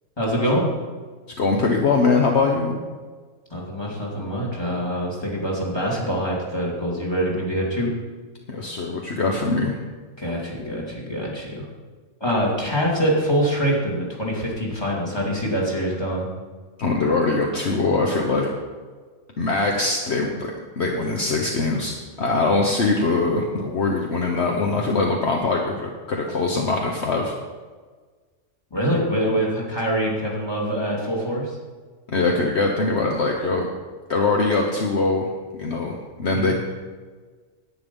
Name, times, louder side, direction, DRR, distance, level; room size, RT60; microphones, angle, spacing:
voice 1, 0.2-0.7 3.5-7.9 10.2-11.6 12.2-16.3 28.7-31.5 36.3-36.5, equal, 20° left, -4 dB, 2.7 m, -24 dB
voice 2, 1.4-2.8 8.5-9.8 16.8-18.5 19.4-27.3 32.1-33.7 34.1-35.3 35.6-36.5, left 3 dB, 60° left, 1 dB, 1.3 m, -22 dB
10.5 x 9.5 x 5.4 m, 1.4 s
omnidirectional pair, 1.3 m